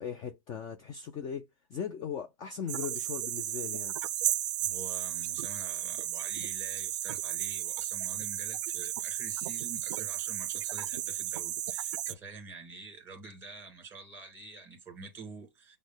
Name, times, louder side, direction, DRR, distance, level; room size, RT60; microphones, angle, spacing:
voice 1, 0.0-1.4 1.7-4.0, left 7 dB, 25° left, 0.4 m, -38 dB
sound 1, 2.7-12.1, right 13 dB, 65° right, 0.4 m, -34 dB
voice 2, 4.6-15.8, right 3 dB, 15° right, 1.9 m, -47 dB
6.0 x 2.1 x 3.7 m
hypercardioid pair, 140°, 17 cm